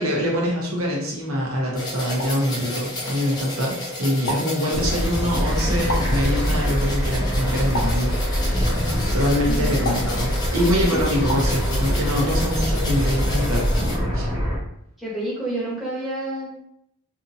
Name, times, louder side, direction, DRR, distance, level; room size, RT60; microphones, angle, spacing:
voice 1, 0.0-8.7 9.1-14.3, equal, 85° right, -2 dB, 0.9 m, -24 dB
sound 1, 1.7-14.0, left 1 dB, 20° left, 0.6 m, -33 dB
sound 2, 2.2-2.5 4.3-4.6 5.9-6.3 7.7-8.2 9.8-10.2 11.3-11.6, equal, 85° left, 0.6 m, -30 dB
sound 3, 4.7-14.6, equal, 25° right, 1.3 m, -24 dB
voice 2, 15.0-16.6, right 1 dB, ahead, -8 dB, 1.0 m, -29 dB
2.7 x 2.6 x 2.5 m, 0.75 s
head